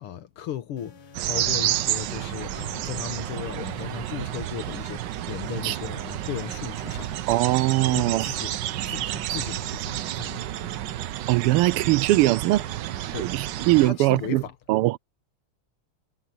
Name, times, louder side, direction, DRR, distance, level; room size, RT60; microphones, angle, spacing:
voice 1, 0.0-7.2 7.7-8.5 8.8-10.5 13.1-13.3 13.8-14.6, left 10 dB, 85° left, 2.2 m, -36 dB
sound 1, 0.8-14.5, left 7 dB, 60° left, 2.2 m, -50 dB
sound 2, 1.1-13.9, right 13 dB, 70° right, 1.1 m, -30 dB
voice 2, 7.3-8.3 11.3-12.6 13.0-14.4 14.7-15.0, right 18 dB, 90° right, 1.5 m, -21 dB
omnidirectional pair, 2.4 m